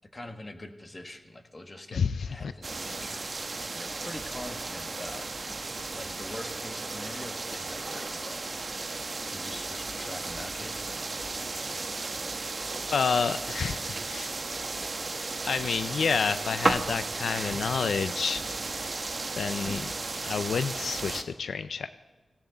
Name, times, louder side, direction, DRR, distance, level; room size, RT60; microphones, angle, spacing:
voice 1, 0.0-5.3 5.9-8.5 9.0-11.0, left 1 dB, 25° left, 6 dB, 1.4 m, -44 dB
voice 2, 1.9-2.5 12.9-14.3 15.5-18.4 19.4-19.9 20.2-21.9, left 6 dB, 85° left, 13 dB, 0.4 m, -29 dB
sound 1, 2.6-21.2, right 3 dB, 45° right, 1.0 m, -34 dB
17.5 x 16.5 x 3.9 m, 1.2 s
wide cardioid pair, 85°, 0 cm